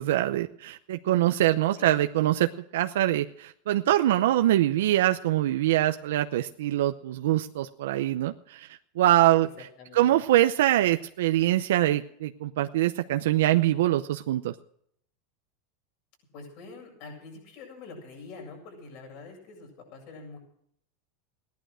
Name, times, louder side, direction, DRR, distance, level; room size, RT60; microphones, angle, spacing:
voice 1, 0.0-9.5 9.9-14.5, right 14 dB, 85° right, 7 dB, 0.7 m, -24 dB
voice 2, 9.4-10.1 16.3-20.4, left 3 dB, 55° left, 1 dB, 7.8 m, -45 dB
16.5 x 11.5 x 6.2 m, 0.68 s
supercardioid pair, 145°, 0 cm